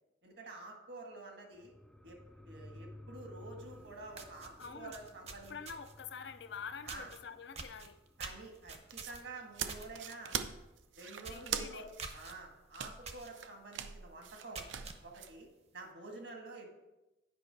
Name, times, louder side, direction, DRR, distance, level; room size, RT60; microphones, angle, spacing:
voice 1, 0.2-1.7 2.0-2.2 2.4-5.6 6.8-7.1 8.2-10.4 11.0-14.7 15.0-16.7, right 2 dB, 70° right, 1.7 m, -49 dB
sound 1, 1.5-10.7 11.0-11.1, left 1 dB, 5° left, 0.3 m, -56 dB
sound 2, 3.7-3.8 4.1-6.0 6.9-7.2 7.5-9.9 10.2-10.5 10.8-10.9 11.2-11.5 12.0-12.3 13.0-13.3 13.7-13.8 14.3-15.0, right 4 dB, 35° right, 0.7 m, -47 dB
voice 2, 4.6-5.0 5.5-8.0 11.3-11.9, left 6 dB, 65° left, 0.5 m, -46 dB
sound 3, 8.9-15.3, right 8 dB, 90° right, 0.6 m, -42 dB
9.1 x 5.4 x 4.6 m
head